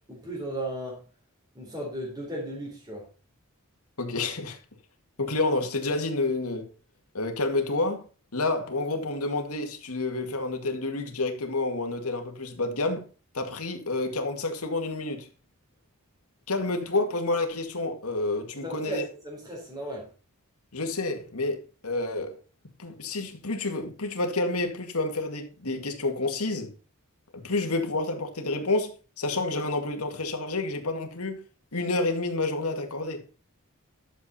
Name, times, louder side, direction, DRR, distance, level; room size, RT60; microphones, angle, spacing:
voice 1, 0.1-1.0 1.5-3.0 18.6-20.1, right 1 dB, 15° right, 3.9 m, -35 dB
voice 2, 4.0-4.6 5.2-6.7 7.1-8.0 8.3-13.1 13.3-15.3 16.5-19.0 20.7-22.4 22.8-26.7 27.3-28.9 29.2-31.4 31.7-33.2, left 2 dB, 85° left, 2.1 m, -29 dB
11.5 x 7.3 x 4.3 m
head